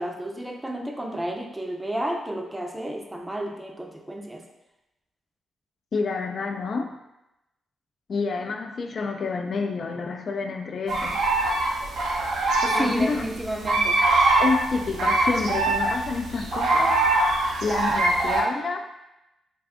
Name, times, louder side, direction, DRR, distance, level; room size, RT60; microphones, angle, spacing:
voice 1, 0.0-4.4 12.8-14.0, right 1 dB, 15° right, 1 dB, 0.5 m, -31 dB
voice 2, 5.9-6.9 8.1-11.2 12.6-13.3 14.4-17.0 17.6-18.8, left 4 dB, 60° left, 5 dB, 0.3 m, -28 dB
sound 1, 10.9-18.4, right 2 dB, 75° right, 0.5 m, -23 dB
2.5 x 2.3 x 3.5 m, 0.92 s
supercardioid pair, 50°, 0 cm